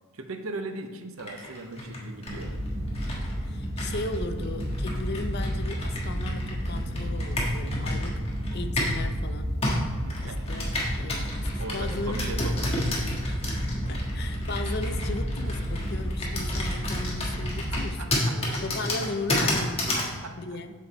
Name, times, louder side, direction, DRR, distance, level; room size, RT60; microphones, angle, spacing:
voice 1, 0.1-2.5 10.0-10.6 11.0-11.1 11.6-13.1 13.6-13.7 17.7-18.6 20.0-20.6, right 2 dB, 75° right, 6 dB, 0.8 m, -39 dB
Computer keyboard, 1.2-9.1 9.6-20.1, left 1 dB, 25° left, 1.4 m, -32 dB
sound 1, 2.3-17.9, equal, 40° right, 1.0 m, -31 dB
voice 2, 3.5-8.2 8.5-9.5 10.2-12.5 13.3-13.4 13.9-20.0 20.4-20.7, left 3 dB, 50° left, 8 dB, 0.5 m, -36 dB
7.4 x 6.6 x 4.2 m, 1.4 s
head